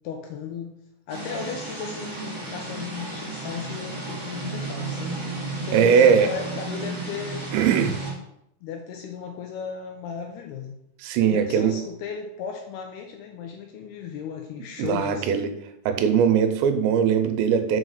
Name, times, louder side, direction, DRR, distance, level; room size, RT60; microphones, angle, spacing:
voice 1, 0.0-0.7 1.1-5.2 5.6-7.5 8.6-10.8 11.3-15.3, left 6 dB, 75° left, 3 dB, 2.5 m, -35 dB
sound 1, 1.1-8.1, right 3 dB, 15° right, 1.1 m, -33 dB
voice 2, 5.7-6.3 7.5-8.0 11.0-11.7 14.8-15.5 15.9-17.8, right 7 dB, 80° right, 7 dB, 3.0 m, -20 dB
6.3 x 5.2 x 6.5 m, 0.78 s
omnidirectional pair, 5.2 m